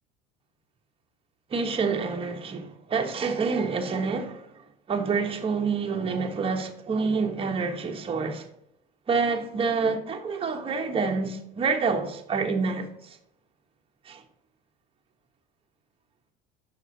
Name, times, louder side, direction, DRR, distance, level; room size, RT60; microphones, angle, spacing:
voice 1, 1.5-4.5 4.9-8.4 9.1-12.9 14.1-14.2, right 4 dB, 25° right, 1.2 m, -27 dB
6.8 x 4.8 x 5.6 m
supercardioid pair, 115°, 20 cm